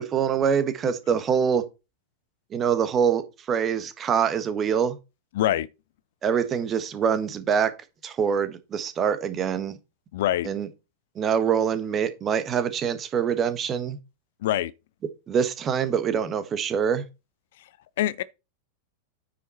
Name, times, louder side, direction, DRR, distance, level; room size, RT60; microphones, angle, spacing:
voice 1, 0.0-1.6 2.5-5.0 6.2-7.7 8.0-9.7 10.4-10.7 11.1-14.0 15.3-17.0, right 7 dB, 25° right, 1.4 m, -24 dB
voice 2, 5.3-5.7 10.1-10.5 14.4-14.7 18.0-18.2, left 13 dB, 55° left, 0.5 m, -24 dB
9.3 x 6.0 x 4.2 m
figure-of-eight pair, 90°, 0 cm